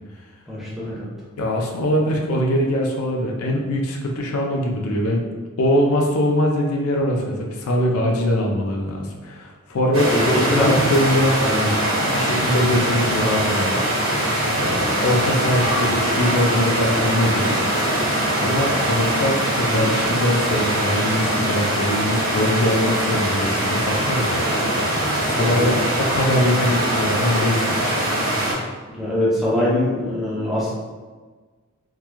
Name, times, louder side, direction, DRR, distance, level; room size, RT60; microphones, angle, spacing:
voice 1, 0.5-1.1 10.1-10.7 11.4-11.7 25.4-25.7 28.9-30.7, left 1 dB, ahead, -9 dB, 0.6 m, -23 dB
voice 2, 1.4-5.2 5.6-11.3 12.0-13.8 14.5-17.8 18.4-24.5 25.2-25.7 26.0-28.0, left 1 dB, 85° left, 0 dB, 0.4 m, -22 dB
sound 1, 9.9-28.5, right 1 dB, 65° right, 1.0 m, -22 dB
2.9 x 2.2 x 2.3 m, 1.4 s
head